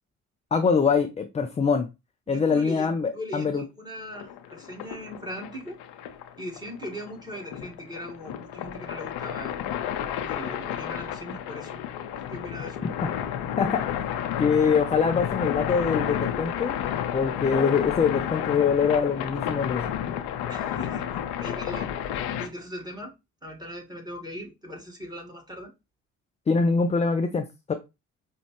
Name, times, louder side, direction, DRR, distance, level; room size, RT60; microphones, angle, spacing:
voice 1, 0.5-1.9 2.3-3.6 13.6-13.9 14.4-16.8 17.1-19.9 26.5-27.7, left 5 dB, 15° left, 0.4 m, -24 dB
voice 2, 2.3-2.9 3.1-5.8 6.4-9.6 10.2-11.8 12.2-12.8 20.5-21.9 22.3-23.1 23.4-25.7, equal, 10° right, 1.7 m, -39 dB
sound 1, 4.1-22.5, left 10 dB, 65° left, 0.7 m, -31 dB
5.1 x 2.3 x 3.1 m
figure-of-eight pair, 45°, 42 cm